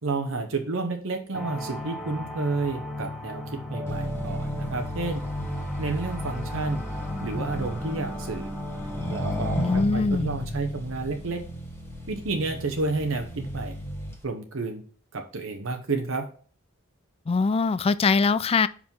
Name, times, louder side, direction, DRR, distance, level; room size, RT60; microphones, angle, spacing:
voice 1, 0.0-5.2 5.8-6.8 7.2-8.5 9.1-11.4 12.1-13.7 14.2-14.8 15.1-16.3, right 3 dB, 70° right, 0.9 m, -30 dB
sound 1, 1.3-9.8, left 1 dB, 5° right, 1.0 m, -36 dB
Accelerating revving vroom, 3.9-14.2, equal, 15° left, 1.3 m, -34 dB
voice 2, 9.6-10.3 17.3-18.7, left 4 dB, 30° left, 0.3 m, -22 dB
5.6 x 4.9 x 5.3 m
head